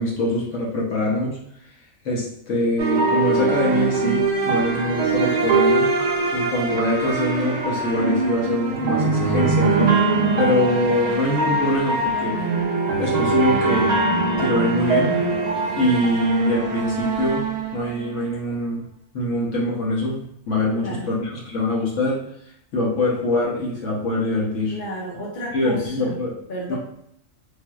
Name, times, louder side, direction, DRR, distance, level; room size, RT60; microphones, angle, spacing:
voice 1, 0.0-1.4 2.0-5.9 6.3-9.9 10.4-12.4 12.9-14.0 14.4-15.1 15.8-17.5 17.7-18.8 19.1-22.2 22.7-24.8 25.5-26.8, left 1 dB, 75° left, -5 dB, 1.1 m, -23 dB
sound 1, 2.8-18.3, right 3 dB, 90° right, 0.3 m, -22 dB
voice 2, 20.7-21.1 24.7-26.2 26.5-26.8, right 1 dB, 50° left, -3 dB, 0.9 m, -32 dB
3.4 x 2.6 x 2.3 m, 0.71 s
omnidirectional pair, 1.3 m